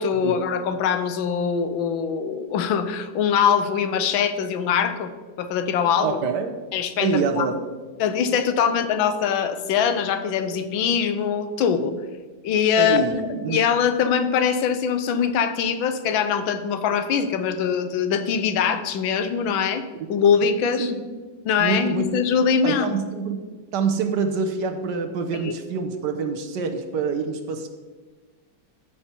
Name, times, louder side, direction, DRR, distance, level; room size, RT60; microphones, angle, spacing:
voice 1, 0.0-5.1 5.4-6.2 6.7-7.5 8.0-11.9 12.4-13.0 13.5-19.8 20.1-20.9 21.4-22.9 25.4-25.5, left 7 dB, 85° left, 10 dB, 1.6 m, -22 dB
voice 2, 6.0-6.5 7.0-7.6 12.8-13.6 20.6-20.9 21.6-22.1 22.6-23.4 23.7-27.7, right 5 dB, 65° right, 6 dB, 1.4 m, -26 dB
14.0 x 5.2 x 4.4 m, 1.4 s
omnidirectional pair, 2.1 m